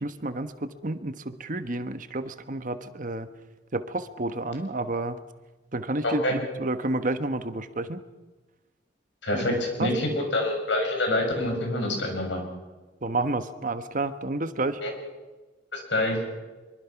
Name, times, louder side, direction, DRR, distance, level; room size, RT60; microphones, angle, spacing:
voice 1, 0.0-3.3 3.7-5.2 5.7-8.0 9.3-9.9 13.0-14.8, right 2 dB, 45° right, 10 dB, 1.2 m, -30 dB
voice 2, 6.0-6.3 9.2-12.4 14.8-14.9 15.7-16.3, left 1 dB, 75° left, 3 dB, 6.6 m, -26 dB
24.5 x 23.5 x 5.9 m, 1.2 s
head